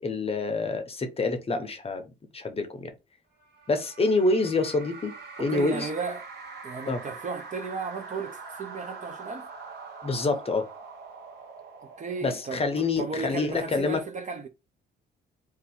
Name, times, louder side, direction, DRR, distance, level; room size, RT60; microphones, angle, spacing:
voice 1, 0.0-2.0 2.3-2.9 3.7-5.9 6.9-7.0 10.0-10.7 12.2-14.0, left 3 dB, 30° left, 0.7 m, -27 dB
sound 1, 3.4-13.1, right 4 dB, 55° right, 1.2 m, -44 dB
voice 2, 5.4-6.3 6.6-9.5 11.8-14.5, right 4 dB, 40° right, 0.7 m, -35 dB
2.7 x 2.4 x 4.1 m
cardioid pair, 90°, 20 cm